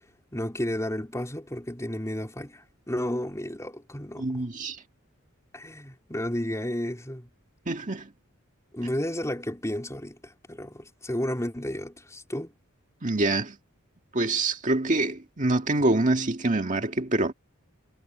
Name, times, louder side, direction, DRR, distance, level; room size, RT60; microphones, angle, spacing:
voice 1, 0.3-4.3 5.5-7.3 8.7-12.5, left 1 dB, 15° left, 4.1 m, -32 dB
voice 2, 4.2-4.8 7.7-8.1 13.0-13.6 14.1-17.3, right 2 dB, 40° right, 1.9 m, -25 dB
head